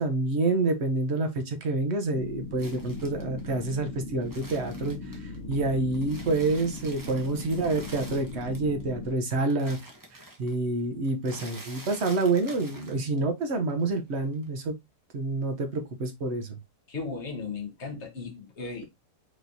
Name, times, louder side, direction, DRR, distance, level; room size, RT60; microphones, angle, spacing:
voice 1, 0.0-9.8 10.1-14.8 15.1-16.6, right 2 dB, 50° right, 0.9 m, -28 dB
sound 1, 2.1-9.1, left 3 dB, 30° left, 1.0 m, -39 dB
sound 2, 2.6-5.6 5.9-8.8 9.1-13.4 13.7-14.6, right 1 dB, 15° right, 0.8 m, -47 dB
voice 2, 16.9-18.8, left 4 dB, 45° left, 1.4 m, -36 dB
4.8 x 3.1 x 2.6 m
omnidirectional pair, 1.7 m